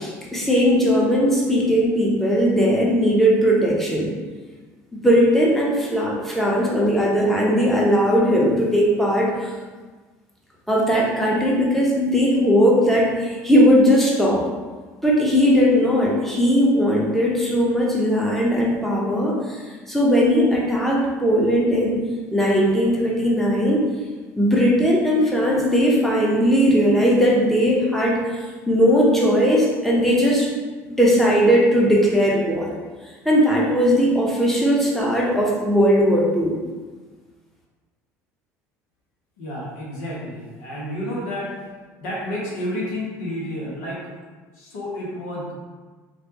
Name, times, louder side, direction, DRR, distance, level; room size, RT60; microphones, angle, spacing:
voice 1, 0.0-4.1 4.9-9.3 10.7-14.4 15.0-19.6 19.9-22.0 22.3-23.8 24.4-28.2 28.7-30.5 30.8-32.7 33.2-36.5, equal, 5° left, -4 dB, 0.9 m, -18 dB
voice 2, 39.4-41.5 42.0-44.1 44.5-45.5, left 1 dB, 80° left, -5 dB, 1.1 m, -30 dB
3.2 x 2.6 x 2.9 m, 1.4 s
hypercardioid pair, 70°, 8 cm